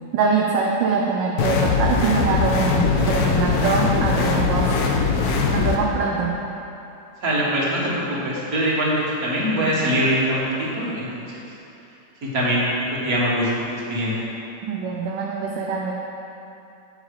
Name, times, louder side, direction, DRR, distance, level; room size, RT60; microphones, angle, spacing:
voice 1, 0.1-4.7 5.5-6.3 14.7-15.9, right 4 dB, 75° right, -1 dB, 1.3 m, -23 dB
sound 1, 1.4-5.8, left 4 dB, 65° left, 1.1 m, -21 dB
voice 2, 7.2-11.3 12.2-14.2, equal, 50° right, -6 dB, 2.0 m, -23 dB
8.1 x 6.5 x 4.9 m, 2.8 s
omnidirectional pair, 2.1 m